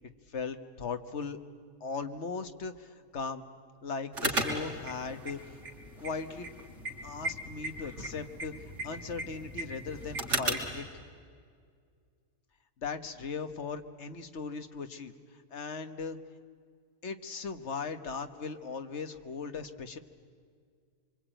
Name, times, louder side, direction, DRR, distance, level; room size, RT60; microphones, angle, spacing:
voice 1, 0.3-1.4 1.8-3.5 3.8-5.6 6.0-6.5 7.0-8.5 8.8-10.9 12.8-16.2 17.0-20.0, left 5 dB, 55° left, 8 dB, 1.5 m, -38 dB
sound 1, 4.1-10.8, right 1 dB, 60° right, 3.9 m, -36 dB
26.0 x 24.0 x 9.0 m, 2.1 s
omnidirectional pair, 1.4 m